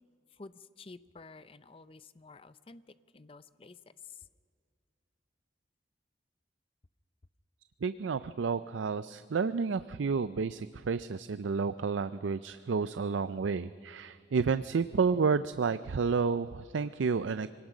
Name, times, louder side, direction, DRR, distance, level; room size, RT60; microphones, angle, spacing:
voice 1, 0.4-2.8 3.1-3.8 4.1-4.2, left 3 dB, 30° left, 14 dB, 0.5 m, -51 dB
voice 2, 7.8-17.5, right 5 dB, 85° right, 14 dB, 0.4 m, -30 dB
25.0 x 18.0 x 6.2 m, 2.1 s
head